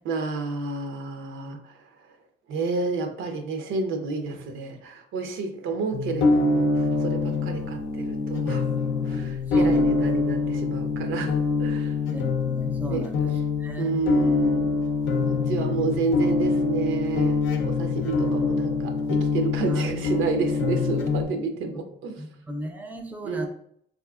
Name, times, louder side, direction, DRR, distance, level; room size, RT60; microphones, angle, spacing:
voice 1, 0.0-2.1 2.5-8.7 9.0-11.9 12.9-13.1 13.8-14.8 15.2-22.2 23.2-23.5, right 4 dB, 85° right, 6 dB, 0.5 m, -30 dB
sound 1, 5.9-21.2, left 3 dB, 75° left, 0.5 m, -25 dB
voice 2, 7.2-7.6 9.5-10.0 12.1-13.3 13.6-13.9 19.7-19.9 22.2-23.5, equal, 10° right, 4 dB, 0.5 m, -35 dB
3.6 x 2.7 x 2.3 m, 0.67 s
cardioid pair, 90°, 20 cm